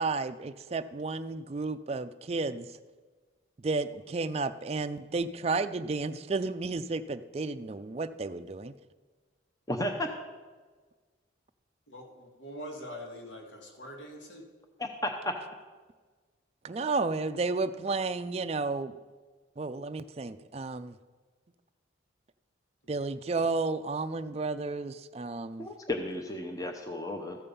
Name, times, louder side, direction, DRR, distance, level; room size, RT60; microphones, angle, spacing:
voice 1, 0.0-2.7 3.6-8.7 16.6-18.9 19.6-20.9 22.9-25.7, right 3 dB, 35° right, 10 dB, 0.4 m, -32 dB
voice 2, 9.7-10.1 14.8-15.3 25.6-27.4, left 1 dB, 20° left, 3 dB, 0.7 m, -33 dB
voice 3, 11.9-14.5, equal, 80° left, 1 dB, 2.0 m, -44 dB
14.0 x 5.5 x 6.9 m, 1.4 s
head